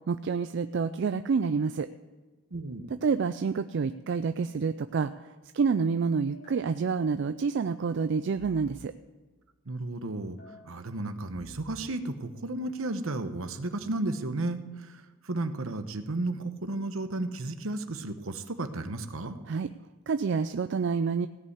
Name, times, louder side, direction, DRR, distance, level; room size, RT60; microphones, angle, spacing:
voice 1, 0.1-1.9 3.0-8.9 19.5-19.7 20.1-21.3, right 5 dB, 55° right, 11 dB, 0.3 m, -28 dB
voice 2, 2.5-2.9 9.7-10.4 10.6-19.4, right 2 dB, 70° right, 9 dB, 1.0 m, -33 dB
sound 1, 6.3-6.7 8.3-8.9 10.4-10.7 11.3-11.8, left 1 dB, 75° left, 3.8 m, -51 dB
16.5 x 5.6 x 8.0 m, 1.2 s
head